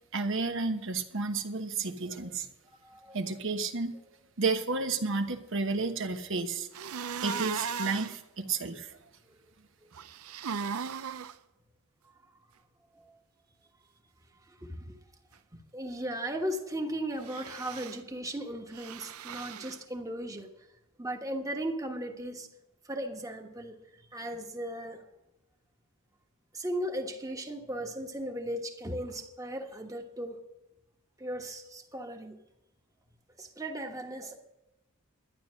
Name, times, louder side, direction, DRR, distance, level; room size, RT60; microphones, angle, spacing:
voice 1, 0.1-2.5 3.1-3.9 4.4-6.7 7.2-9.0, right 4 dB, 60° right, 7 dB, 1.1 m, -31 dB
voice 2, 2.8-3.2 12.9-13.0 14.5-15.0 15.7-20.5 21.0-22.5 22.8-25.0 26.5-30.4 31.2-32.4 33.4-34.4, right 1 dB, 15° right, 4 dB, 1.3 m, -37 dB
sound 1, 6.7-8.2 9.9-11.3 17.2-18.0 18.7-19.8, right 6 dB, 85° right, 0.6 m, -37 dB
12.0 x 10.5 x 6.3 m, 0.96 s
head